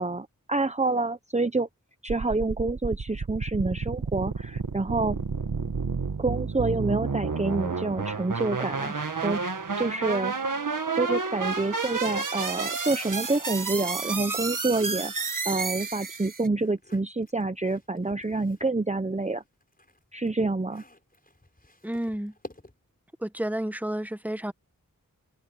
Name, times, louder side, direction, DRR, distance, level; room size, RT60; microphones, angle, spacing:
voice 1, 0.0-1.7 2.0-5.2 6.2-9.5 9.8-10.3 10.9-19.4 20.1-20.8, right 3 dB, 20° right, 0.9 m, -28 dB
sound 1, 2.1-16.5, right 4 dB, 65° right, 2.0 m, -31 dB
sound 2, 16.5-18.8 19.2-23.0, left 1 dB, 25° left, 5.8 m, -51 dB
voice 2, 21.8-22.3 23.2-24.5, right 1 dB, 5° right, 1.4 m, -31 dB
wide cardioid pair, 50°, 34 cm